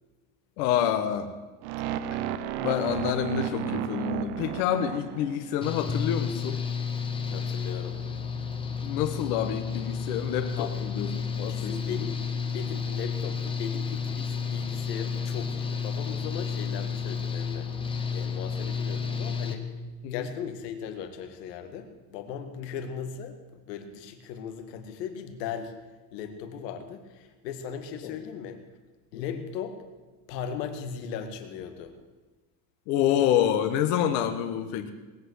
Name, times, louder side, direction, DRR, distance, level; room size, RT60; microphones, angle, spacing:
voice 1, 0.6-1.3 2.1-2.2 2.6-6.6 8.8-12.0 20.0-20.3 22.6-22.7 28.0-28.1 29.1-29.4 32.9-34.9, left 10 dB, 65° left, 7 dB, 1.4 m, -28 dB
sound 1, 1.6-5.7, right 10 dB, 50° right, 0.7 m, -33 dB
Engine / Mechanical fan, 5.6-19.5, left 6 dB, 10° left, 0.8 m, -31 dB
voice 2, 7.3-8.0 10.6-10.7 11.5-17.7 18.1-19.7 20.1-25.8 26.1-28.7 29.1-29.8 30.3-31.9, left 7 dB, 90° left, 7 dB, 1.9 m, -38 dB
19.0 x 8.2 x 8.0 m, 1.2 s
cardioid pair, 160°, 47 cm